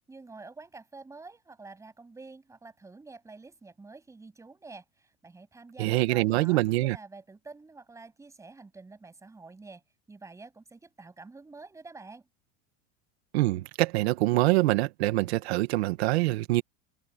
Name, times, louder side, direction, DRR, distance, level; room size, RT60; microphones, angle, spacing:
voice 1, 0.1-9.8 10.1-12.3, right 3 dB, 10° right, 7.9 m, -48 dB
voice 2, 5.8-7.0 13.3-16.6, right 18 dB, 80° right, 1.8 m, -25 dB
supercardioid pair, 155°, 32 cm